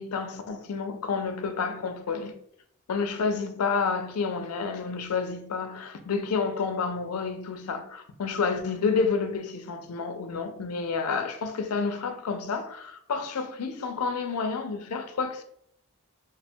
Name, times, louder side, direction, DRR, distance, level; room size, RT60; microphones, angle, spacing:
voice 1, 0.0-2.4 2.9-15.4, left 5 dB, 85° left, 0.5 m, -29 dB
3.1 x 2.2 x 4.3 m
head